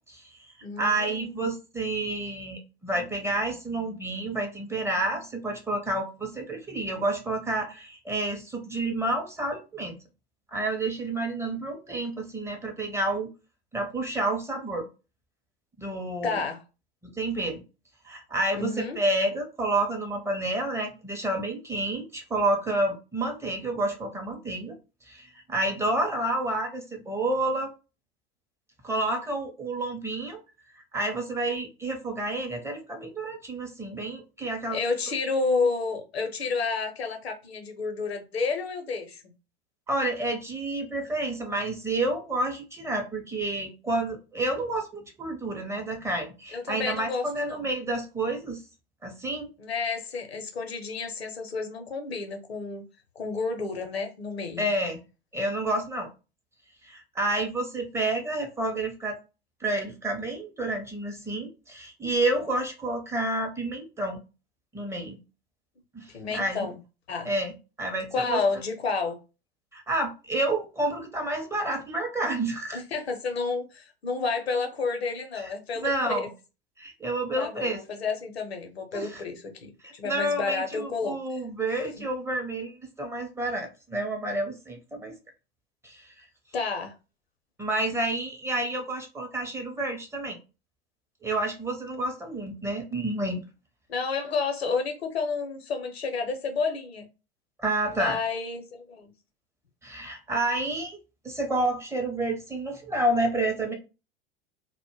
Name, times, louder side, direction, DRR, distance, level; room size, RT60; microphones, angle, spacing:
voice 1, 0.1-10.0 10.5-13.3 13.7-14.9 15.8-16.4 17.0-17.6 18.0-24.8 25.1-27.7 28.8-30.4 30.7-34.8 39.9-48.6 49.0-49.5 54.6-55.0 55.3-56.1 56.8-59.2 59.6-64.2 64.7-65.2 65.9-66.7 67.2-68.4 69.7-72.8 75.4-76.3 76.8-77.8 78.9-79.2 79.8-85.1 85.8-86.3 87.6-90.4 91.2-93.4 97.6-98.2 99.8-101.0 101.2-103.7, right 2 dB, 10° right, 0.5 m, -29 dB
voice 2, 0.6-1.5 16.2-16.6 18.5-19.0 34.7-39.3 46.5-47.7 49.6-52.8 53.2-54.6 66.1-66.8 67.1-67.3 68.1-69.2 72.7-76.3 77.4-79.5 79.9-81.1 81.8-82.0 86.5-86.9 93.9-97.1 97.9-99.1, left 4 dB, 80° left, 0.6 m, -30 dB
2.1 x 2.0 x 3.0 m
figure-of-eight pair, 85°, 31 cm